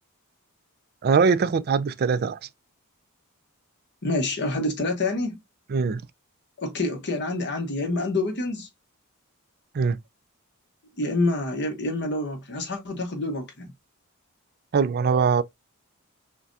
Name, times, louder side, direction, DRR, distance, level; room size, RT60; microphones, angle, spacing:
voice 1, 1.0-2.4 5.7-6.0 9.7-10.0 14.7-15.4, right 5 dB, 45° right, 0.4 m, -22 dB
voice 2, 4.0-5.4 6.6-8.7 11.0-13.7, left 2 dB, 55° left, 1.1 m, -27 dB
5.7 x 2.2 x 2.6 m
head